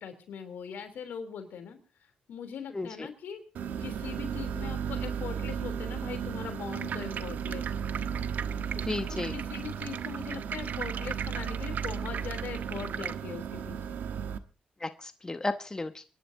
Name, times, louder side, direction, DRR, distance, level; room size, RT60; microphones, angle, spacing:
voice 1, 0.0-1.8 2.3-3.4 3.8-7.9 9.1-14.0, left 7 dB, 80° left, 7 dB, 3.2 m, -41 dB
voice 2, 2.7-3.1 8.9-9.3 14.8-16.0, left 2 dB, 20° left, 9 dB, 1.0 m, -34 dB
sound 1, 3.5-14.4, right 7 dB, 80° right, 1.1 m, -35 dB
sound 2, 6.7-13.1, right 7 dB, 65° right, 0.7 m, -40 dB
28.5 x 11.0 x 2.7 m, 0.36 s
cardioid pair, 70°, 3 cm